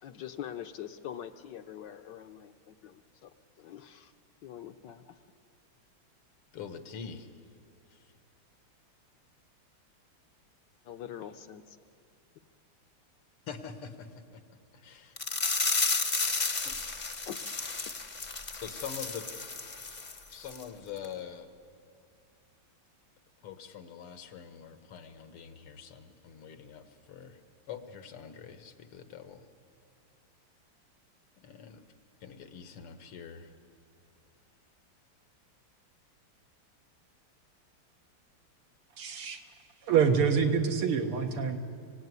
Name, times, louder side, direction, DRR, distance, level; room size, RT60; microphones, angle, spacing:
voice 1, 0.0-3.3 3.6-4.1 4.4-5.2 10.8-11.8 17.3-17.4, left 10 dB, 65° left, 9 dB, 1.2 m, -44 dB
voice 2, 6.5-7.3 13.5-15.2 16.6-16.7 18.5-19.3 20.3-21.5 23.4-27.4 27.7-29.4 31.4-31.8 32.2-33.5, left 7 dB, 85° left, 9 dB, 2.3 m, -44 dB
sound 1, 15.2-20.2 20.5-20.6 21.0-21.1, left 3 dB, 30° left, 0.8 m, -32 dB
voice 3, 39.0-39.4 39.8-41.6, right 6 dB, 85° right, 5 dB, 2.4 m, -26 dB
24.5 x 17.0 x 9.5 m, 2.4 s
omnidirectional pair, 2.4 m